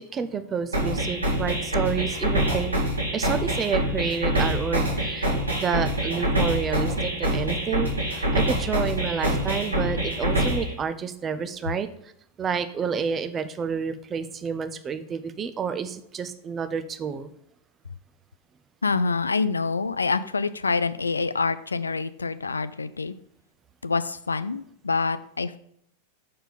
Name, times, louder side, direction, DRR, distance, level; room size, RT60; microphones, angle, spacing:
voice 1, 0.1-2.7 3.1-12.1 12.4-17.3, right 6 dB, 25° right, 10 dB, 0.6 m, -29 dB
sound 1, 0.7-10.7, right 1 dB, 80° right, 2.3 m, -25 dB
voice 2, 18.8-23.1 23.8-25.6, left 4 dB, 75° left, 14 dB, 0.3 m, -26 dB
6.6 x 4.5 x 5.1 m, 0.72 s
figure-of-eight pair, 90°, 0 cm